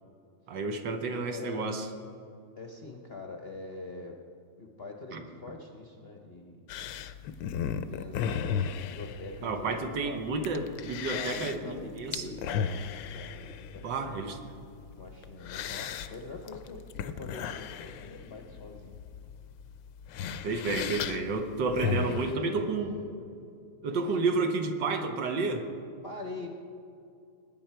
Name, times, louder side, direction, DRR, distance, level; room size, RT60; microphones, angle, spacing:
voice 1, 0.5-1.9 5.1-5.2 9.4-12.3 13.8-14.4 20.4-22.9 23.8-25.7, right 3 dB, 70° right, 5 dB, 1.6 m, -31 dB
voice 2, 1.3-1.7 2.6-4.2 4.6-6.6 7.7-10.2 11.1-14.2 14.9-19.0 21.8-23.1 26.0-26.5, left 3 dB, 45° left, 2 dB, 0.8 m, -43 dB
sound 1, 6.7-22.4, left 7 dB, 75° left, 1.2 m, -36 dB
20.0 x 9.2 x 4.5 m, 2.5 s
omnidirectional pair, 2.1 m